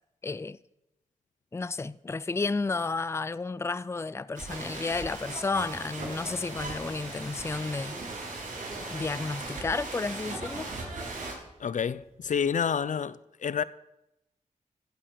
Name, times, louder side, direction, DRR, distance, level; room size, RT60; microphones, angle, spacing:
voice 1, 0.2-0.6 1.5-8.0 8.9-10.7, left 3 dB, 20° left, 0.4 m, -32 dB
sound 1, 4.3-11.3, right 2 dB, 70° right, 5.7 m, -38 dB
sound 2, 7.2-12.6, right 2 dB, 50° right, 4.9 m, -55 dB
voice 2, 11.6-13.6, left 7 dB, 70° left, 0.5 m, -29 dB
16.0 x 7.5 x 6.7 m
cardioid pair, 55°, 13 cm